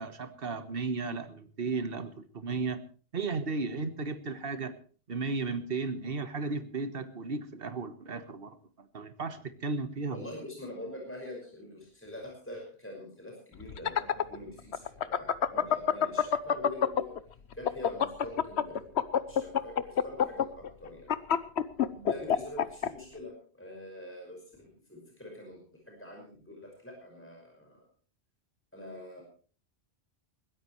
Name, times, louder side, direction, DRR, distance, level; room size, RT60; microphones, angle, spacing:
voice 1, 0.0-2.8 3.1-4.8 5.1-10.2, right 4 dB, 60° right, 10 dB, 1.6 m, -35 dB
voice 2, 10.1-17.2 17.5-21.1 21.8-27.9 28.7-29.2, left 1 dB, 10° left, 0 dB, 5.5 m, -45 dB
sound 1, 13.6-17.2 17.5-22.9, left 8 dB, 80° left, 1.1 m, -26 dB
21.5 x 16.5 x 3.2 m, 0.40 s
omnidirectional pair, 1.1 m